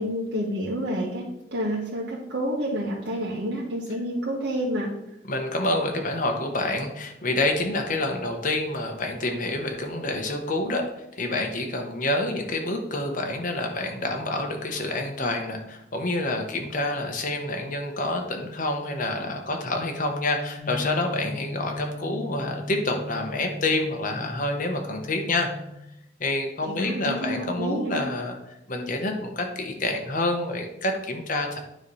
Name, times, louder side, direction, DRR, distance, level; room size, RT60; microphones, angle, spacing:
voice 1, 0.0-4.9 26.6-28.0, equal, 80° right, -5 dB, 1.4 m, -29 dB
voice 2, 5.3-10.8 11.2-25.5 26.2-28.4 28.7-31.6, left 2 dB, 50° left, 3 dB, 1.2 m, -28 dB
sound 1, 20.6-25.7, left 2 dB, 15° right, 1.6 m, -37 dB
9.5 x 3.2 x 5.5 m, 0.83 s
head